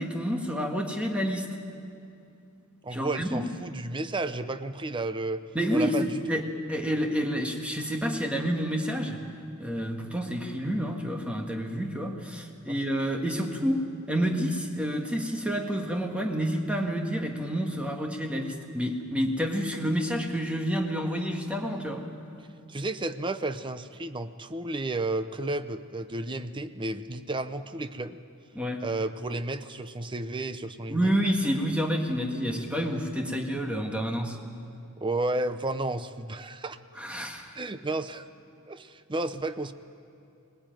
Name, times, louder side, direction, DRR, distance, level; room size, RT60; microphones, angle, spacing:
voice 1, 0.0-1.5 2.9-3.5 5.5-9.3 9.6-22.1 28.5-28.9 30.9-34.4 37.0-37.5, equal, 5° right, 2 dB, 1.7 m, -29 dB
voice 2, 2.8-5.4 5.7-6.4 12.7-12.8 22.7-28.2 28.8-31.1 35.0-36.8 37.5-38.3 38.7-39.7, right 2 dB, 20° right, 11 dB, 0.7 m, -32 dB
20.0 x 19.5 x 9.1 m, 2.6 s
head